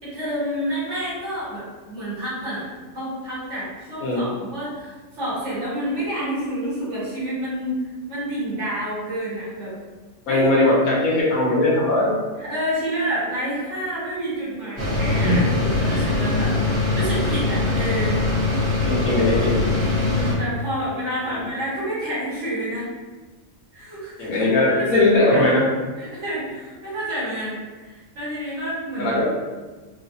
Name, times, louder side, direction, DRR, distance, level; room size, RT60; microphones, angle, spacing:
voice 1, 0.0-2.7 2.9-9.8 10.3-10.6 12.4-18.2 19.9-22.9 23.7-25.5 26.0-29.2, right 1 dB, 55° right, -9 dB, 1.7 m, -29 dB
voice 2, 10.3-12.2 15.2-15.5 18.8-19.6 24.2-25.6 29.0-29.2, left 2 dB, 85° left, -6 dB, 1.3 m, -19 dB
sound 1, 14.8-20.3, left 2 dB, 85° right, 2.0 m, -22 dB
3.9 x 2.5 x 2.6 m, 1.3 s
omnidirectional pair, 1.5 m